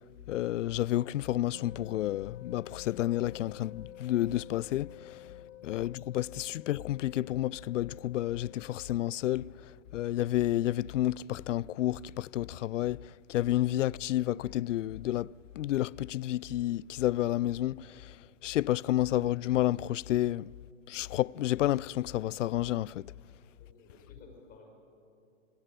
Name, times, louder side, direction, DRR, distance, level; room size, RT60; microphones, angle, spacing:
voice 1, 0.3-5.3 5.6-20.5 20.9-23.1, left 14 dB, 75° left, 0.5 m, -30 dB
sound 1, 1.5-8.9, left 13 dB, 55° left, 1.7 m, -50 dB
voice 2, 5.4-5.7 23.6-24.7, left 3 dB, 25° left, 5.8 m, -56 dB
26.0 x 16.0 x 9.2 m
hypercardioid pair, 130°, 37 cm